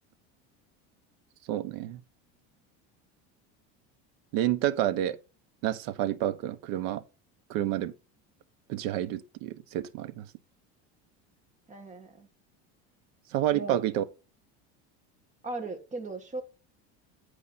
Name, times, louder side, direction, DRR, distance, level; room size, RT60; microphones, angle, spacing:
voice 1, 1.5-2.0 4.3-5.2 5.6-7.0 7.5-7.9 8.7-10.3 13.3-14.0, right 12 dB, 75° right, 1.1 m, -29 dB
voice 2, 11.7-12.3 13.5-13.8 15.4-16.4, right 3 dB, 20° right, 1.9 m, -37 dB
10.0 x 5.0 x 4.1 m
cardioid pair, 140°, 32 cm